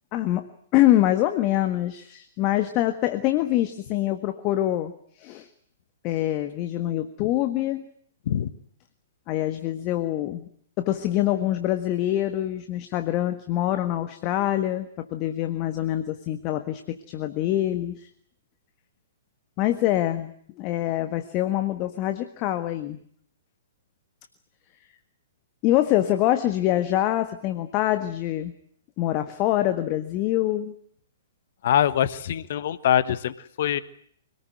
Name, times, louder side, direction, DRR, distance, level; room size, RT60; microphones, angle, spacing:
voice 1, 0.1-4.9 5.2-5.5 6.0-7.8 9.3-10.5 10.8-18.1 19.6-23.0 25.6-28.5 29.0-30.7, left 14 dB, 35° left, 8 dB, 1.5 m, -25 dB
voice 2, 31.6-33.8, left 10 dB, 55° left, 15 dB, 1.3 m, -24 dB
25.5 x 19.0 x 9.2 m, 0.64 s
figure-of-eight pair, 115°, 0 cm